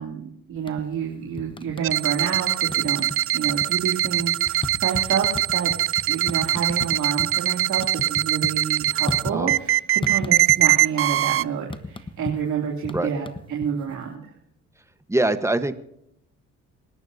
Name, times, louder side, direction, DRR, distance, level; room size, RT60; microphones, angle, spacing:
voice 1, 0.0-14.3, right 7 dB, 75° right, -1 dB, 2.9 m, -29 dB
sound 1, 0.6-1.1 1.4-2.4 2.7-3.2 3.4-7.3 7.6-9.7 10.0-10.9 11.1-14.0, left 2 dB, 15° left, 1.1 m, -34 dB
sound 2, 1.8-11.4, right 13 dB, 50° right, 0.4 m, -22 dB
voice 2, 15.1-15.8, right 2 dB, 10° right, 10 dB, 1.2 m, -23 dB
27.5 x 11.5 x 2.8 m, 0.74 s
cardioid pair, 90°, 30 cm